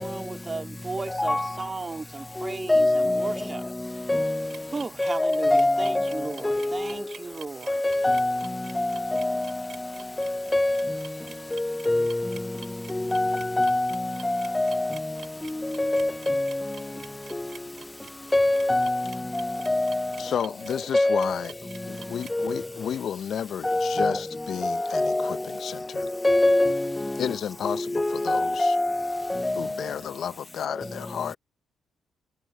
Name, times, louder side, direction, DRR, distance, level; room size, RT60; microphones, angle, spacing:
voice 1, 0.0-3.6 4.7-7.8, right 3 dB, 25° right, 2.1 m, -35 dB
voice 2, 2.7-3.4 4.1-4.5 5.0-6.9 7.7-8.5 8.8-9.5 10.2-11.0 11.5-12.4 12.9-15.0 15.6-16.6 18.3-20.1 20.9-21.3 22.3-22.6 23.6-24.2 24.6-25.4 26.0-27.1 27.7-29.7, left 2 dB, 15° left, 0.3 m, -24 dB
sound 1, 4.5-22.3, right 8 dB, 60° right, 2.8 m, -47 dB
voice 3, 20.2-21.6 21.9-26.1 27.2-28.8 29.6-31.4, left 8 dB, 60° left, 0.7 m, -32 dB
cardioid pair, 90°, 0 cm